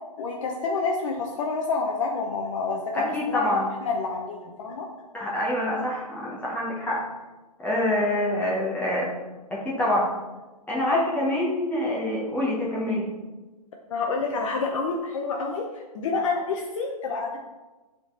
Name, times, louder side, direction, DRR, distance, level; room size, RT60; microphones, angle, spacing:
voice 1, 0.2-3.5 3.8-4.9 13.9-15.7 15.9-17.4, left 4 dB, 55° left, 1 dB, 0.8 m, -28 dB
voice 2, 2.9-3.7 5.1-7.0 7.6-9.1 9.5-10.1 10.7-13.1, left 1 dB, 10° left, -6 dB, 1.1 m, -26 dB
6.9 x 3.9 x 4.0 m, 1.2 s
hypercardioid pair, 145°, 20 cm